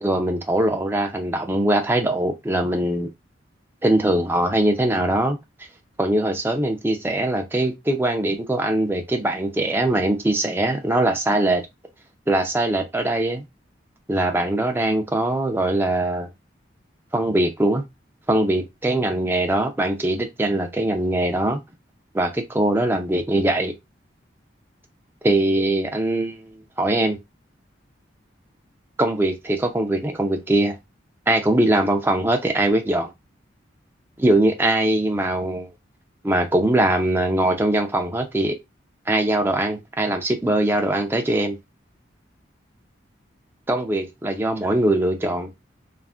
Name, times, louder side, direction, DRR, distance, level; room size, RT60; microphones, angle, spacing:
voice 1, 0.0-3.1 3.8-5.4 6.0-11.6 12.3-13.4 14.1-16.3 17.1-17.8 18.3-21.6 22.1-23.7 25.2-26.5 26.8-27.2 29.0-30.8 31.3-33.1 34.2-35.7 36.2-38.6 39.1-41.6 43.7-45.5, right 1 dB, 10° right, 0.4 m, -21 dB
3.5 x 2.4 x 2.4 m
head